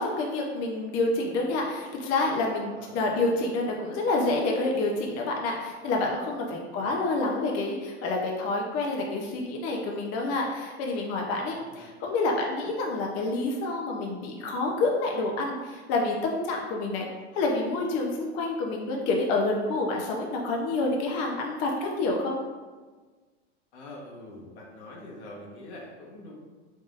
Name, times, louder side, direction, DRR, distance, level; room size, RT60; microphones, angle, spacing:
voice 1, 0.0-17.1 17.3-22.4, left 2 dB, 45° left, 0 dB, 0.7 m, -28 dB
voice 2, 2.7-3.3 6.7-6.9 11.5-11.9 23.7-26.3, left 1 dB, 90° left, -2 dB, 1.2 m, -45 dB
3.9 x 3.6 x 2.4 m, 1.4 s
supercardioid pair, 110°, 33 cm